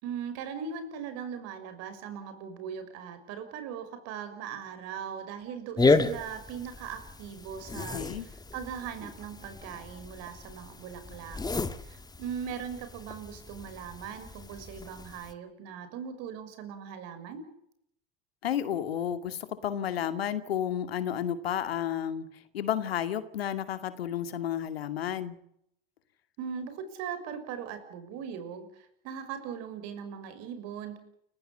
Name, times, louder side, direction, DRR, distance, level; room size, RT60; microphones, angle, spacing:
voice 1, 0.0-11.4 11.8-17.5 26.4-31.0, right 7 dB, 55° right, 10 dB, 6.5 m, -39 dB
sound 1, 5.8-15.3, left 3 dB, 15° left, 2.0 m, -32 dB
voice 2, 7.8-8.2 18.4-22.3 22.5-25.4, left 10 dB, 80° left, 10 dB, 2.5 m, -32 dB
30.0 x 16.0 x 8.1 m, 0.74 s
hypercardioid pair, 85°, 30 cm